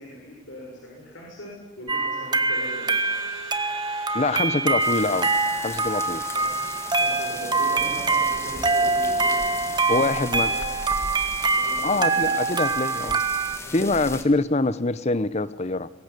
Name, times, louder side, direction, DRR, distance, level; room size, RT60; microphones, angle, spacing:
voice 1, 0.0-3.2 4.8-5.1 6.3-6.6 6.9-10.7 11.6-12.3 12.9-13.1 13.4-14.1, equal, 65° left, -2 dB, 6.8 m, -41 dB
sound 1, 1.9-13.6, right 3 dB, 20° right, 1.3 m, -24 dB
Crowd / Alarm, 1.9-7.5, right 4 dB, 85° right, 7.1 m, -44 dB
voice 2, 4.1-5.3 5.6-6.2 9.9-10.5 11.8-13.2 13.7-15.9, left 2 dB, 30° left, 16 dB, 0.8 m, -24 dB
sound 2, 4.8-14.2, left 2 dB, 15° left, 1.9 m, -37 dB
23.5 x 21.0 x 9.9 m, 1.2 s
head